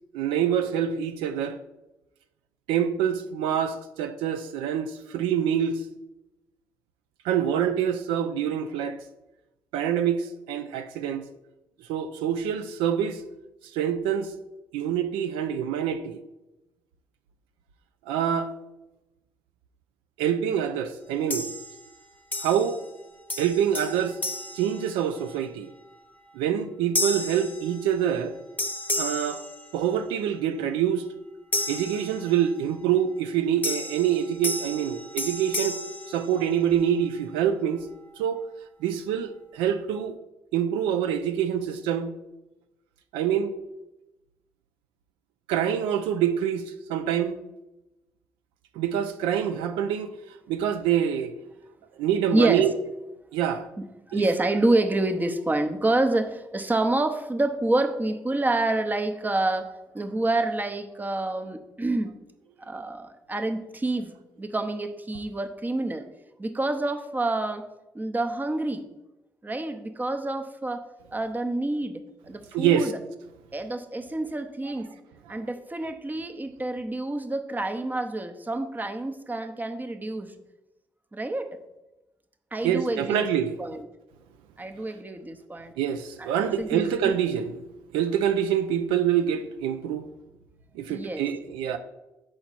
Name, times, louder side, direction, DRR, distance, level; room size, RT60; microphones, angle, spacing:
voice 1, 0.1-1.6 2.7-5.8 7.2-9.0 9.7-11.3 11.8-13.2 13.7-14.3 14.7-16.2 18.1-18.5 20.2-21.5 22.4-22.8 23.4-24.2 24.5-25.7 26.3-28.4 29.0-29.4 29.7-31.0 31.7-35.8 36.1-37.9 38.2-38.4 38.8-40.2 40.5-42.1 43.1-43.5 45.5-47.4 48.7-51.3 52.0-52.7 53.3-53.7 54.1-54.2 72.5-72.9 75.3-75.5 82.6-83.6 85.8-87.6 87.9-90.0 90.7-91.8, right 9 dB, 85° right, 0.3 m, -26 dB
sound 1, 21.3-22.0 22.3-23.0 23.3-25.5 26.0-26.2 26.9-28.3 28.6-30.2 31.5-32.7 33.6-36.9, left 1 dB, 20° left, 0.9 m, -33 dB
voice 2, 52.3-52.7 53.8-62.2 62.6-66.1 66.4-67.7 67.9-68.8 69.4-72.9 73.5-74.9 75.3-80.3 81.1-81.5 82.5-83.2 83.6-83.9 84.6-85.7 86.2-87.1 90.9-91.3, right 2 dB, 20° right, 0.8 m, -28 dB
6.2 x 4.3 x 4.1 m
supercardioid pair, 55°, 8 cm